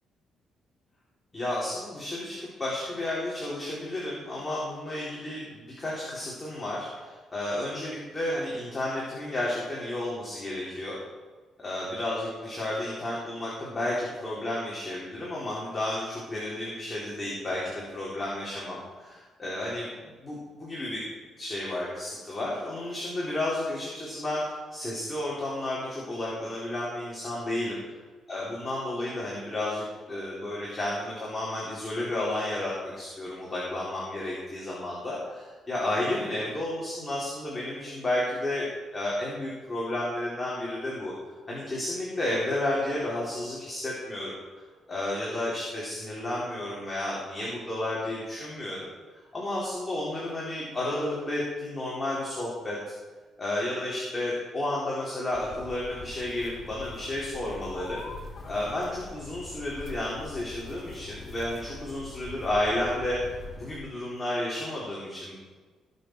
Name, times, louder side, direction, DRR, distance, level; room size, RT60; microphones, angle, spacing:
voice 1, 1.3-11.0 11.6-21.0 21.4-24.4 24.7-27.7 28.3-41.1 41.5-44.4 44.9-48.9 49.3-52.9 53.4-58.0 58.4-63.2 63.5-65.3, left 1 dB, 20° left, -6 dB, 3.9 m, -32 dB
sound 1, 55.3-63.8, left 3 dB, 50° left, 3.4 m, -43 dB
18.0 x 7.0 x 4.7 m, 1.4 s
cardioid pair, 90°, 0 cm